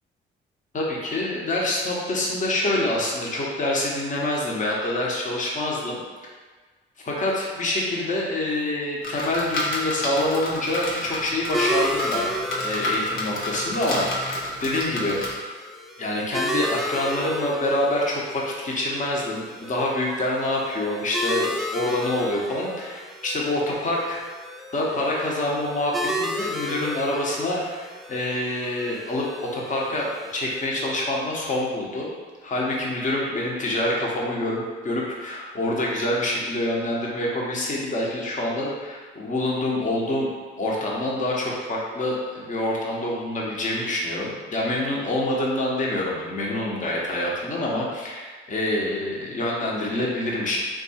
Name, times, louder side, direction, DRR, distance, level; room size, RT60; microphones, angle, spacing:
voice 1, 0.7-6.0 7.0-12.2 12.6-15.4 16.0-24.2 24.7-30.1 30.3-32.1 32.4-40.3 40.6-50.6, left 1 dB, 40° left, -3 dB, 0.9 m, -26 dB
sound 1, 9.0-15.3, left 1 dB, 75° left, 0.9 m, -30 dB
sound 2, 11.5-30.7, equal, ahead, 0.4 m, -33 dB
3.6 x 2.6 x 4.1 m, 1.4 s
cardioid pair, 90°, 20 cm